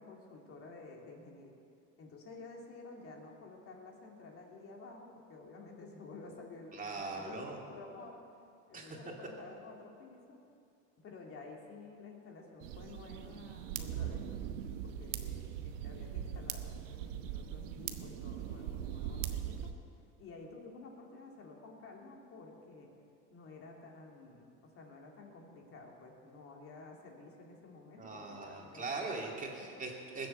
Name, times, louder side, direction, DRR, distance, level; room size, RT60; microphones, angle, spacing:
voice 1, 0.0-1.5 2.0-8.2 8.7-10.4 11.0-14.4 14.8-19.7 20.2-22.9 23.3-29.2, left 3 dB, 40° left, 0 dB, 2.9 m, -51 dB
voice 2, 6.7-7.6 8.7-8.9 28.0-30.3, right 3 dB, 20° right, -1 dB, 2.7 m, -41 dB
sound 1, 12.6-19.7, right 9 dB, 90° right, 1.0 m, -40 dB
20.5 x 7.8 x 7.1 m, 2.4 s
supercardioid pair, 115°, 35 cm